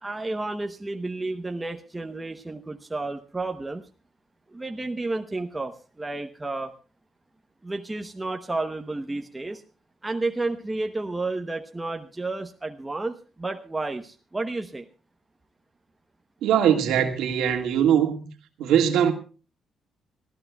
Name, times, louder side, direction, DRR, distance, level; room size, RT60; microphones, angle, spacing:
voice 1, 0.0-3.8 4.5-6.7 7.6-9.6 10.0-14.9, right 2 dB, 15° right, 0.9 m, -31 dB
voice 2, 16.4-18.2 18.6-19.1, right 9 dB, 85° right, 1.8 m, -21 dB
26.5 x 14.5 x 2.3 m
cardioid pair, 90°, 0 cm